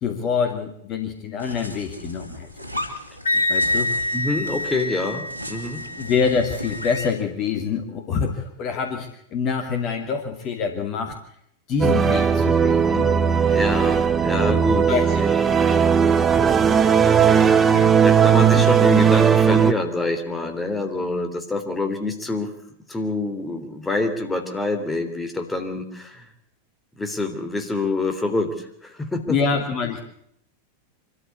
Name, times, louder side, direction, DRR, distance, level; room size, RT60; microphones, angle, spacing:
voice 1, 0.0-2.5 3.5-4.1 6.0-11.1 11.7-13.1 14.9-15.2 17.7-18.0 18.5-18.6 29.3-30.0, left 5 dB, 35° left, 5 dB, 2.5 m, -26 dB
sound 1, 1.4-7.2, left 1 dB, 85° left, 2.9 m, -37 dB
Wind instrument woodwind instrument, 3.3-7.1, left 1 dB, 70° left, 1.5 m, -26 dB
voice 2, 4.1-5.8 12.6-13.1 13.5-15.4 18.0-22.5 22.9-26.3 27.0-29.4, left 2 dB, 10° left, 6 dB, 3.2 m, -26 dB
sound 2, 11.8-19.7, right 7 dB, 20° right, 1.4 m, -17 dB
24.5 x 14.0 x 8.3 m, 0.71 s
figure-of-eight pair, 90°, 0 cm